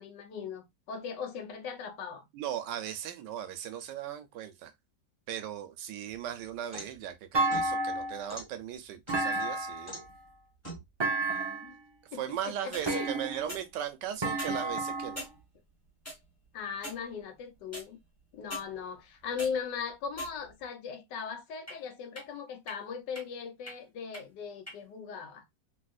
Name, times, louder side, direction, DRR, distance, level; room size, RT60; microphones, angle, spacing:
voice 1, 0.0-2.2 11.3-11.8 12.1-13.1 16.5-18.0 18.3-25.4, left 6 dB, 85° left, 1.4 m, -39 dB
voice 2, 2.3-4.7 5.3-10.0 12.1-15.3, right 10 dB, 85° right, 1.3 m, -38 dB
sound 1, 6.1-7.0 7.5-8.5 9.1-9.5 9.9-10.1 10.6-10.9 12.5-12.9 13.5-13.7 14.3-14.6 15.2-15.3 16.0-16.2 16.8-17.0 17.7-17.8 18.5-18.6 19.1-19.5 20.1-20.6 21.7-21.8 22.2-22.3 22.7-22.8 23.1-23.2 23.7-23.8 24.1-24.2 24.7-24.8, equal, 10° left, 1.0 m, -42 dB
Thump thud, 7.3-8.3 9.1-10.0 11.0-11.8 12.9-13.6 14.2-15.2, right 2 dB, 45° right, 0.3 m, -31 dB
3.3 x 2.7 x 2.3 m
omnidirectional pair, 1.9 m